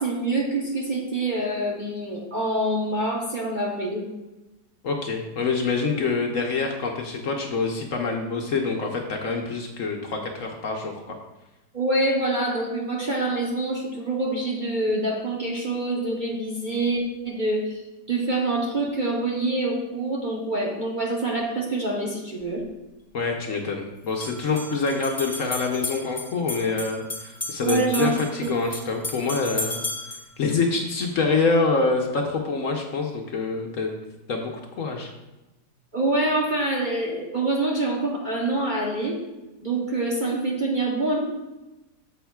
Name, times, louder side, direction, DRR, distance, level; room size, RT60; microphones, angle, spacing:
voice 1, 0.0-4.1 11.7-17.8 18.1-22.6 27.6-28.1 28.4-28.5 35.9-39.2 39.6-41.2, right 2 dB, 40° right, -3 dB, 0.8 m, -26 dB
voice 2, 4.8-10.9 23.1-29.8 30.1-33.9 34.3-34.5 34.8-35.1, left 4 dB, 60° left, 2 dB, 1.0 m, -26 dB
sound 1, 22.4-22.5 24.0-30.3, left 2 dB, 10° left, 0.8 m, -34 dB
8.8 x 7.2 x 2.3 m, 1.0 s
omnidirectional pair, 1.8 m